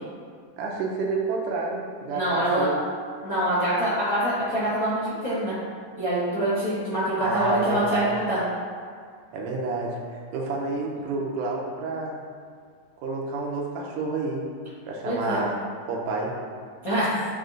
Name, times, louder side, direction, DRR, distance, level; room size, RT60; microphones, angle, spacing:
voice 1, 0.6-2.7 7.2-8.1 9.3-12.2 13.0-14.4 14.9-15.6 15.9-16.4, right 3 dB, 75° right, -2 dB, 2.2 m, -29 dB
voice 2, 2.1-2.7 3.2-5.6 6.0-8.4 15.0-15.4 16.8-17.3, right 1 dB, 55° left, -11 dB, 0.9 m, -25 dB
8.5 x 2.9 x 3.8 m, 2.1 s
omnidirectional pair, 3.8 m